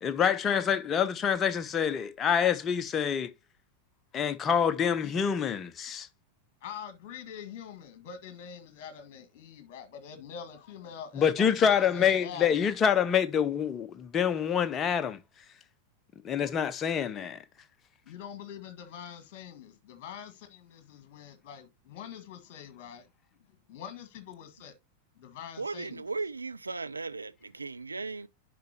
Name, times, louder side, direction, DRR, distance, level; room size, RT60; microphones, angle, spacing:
voice 1, 0.0-3.3 4.1-6.1 11.2-15.2 16.2-17.4, left 7 dB, 25° left, 0.7 m, -26 dB
voice 2, 6.6-12.6 18.0-23.1 23.7-24.7 25.1-26.0, left 8 dB, 45° left, 1.6 m, -45 dB
voice 3, 25.6-28.3, right 3 dB, 80° right, 0.4 m, -36 dB
10.5 x 5.3 x 2.8 m
figure-of-eight pair, 90°, 0 cm